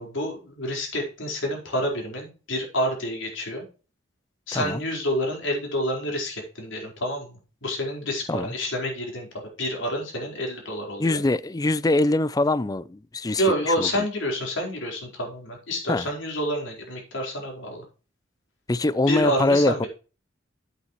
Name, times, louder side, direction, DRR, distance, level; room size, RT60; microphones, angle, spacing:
voice 1, 0.0-3.6 4.5-9.3 9.6-11.2 13.4-17.8 19.1-19.9, equal, 80° left, 4.6 m, -28 dB
voice 2, 4.5-4.8 8.3-8.5 11.0-13.9 15.9-16.1 18.7-19.9, left 2 dB, 20° left, 0.4 m, -23 dB
9.4 x 9.0 x 3.1 m
head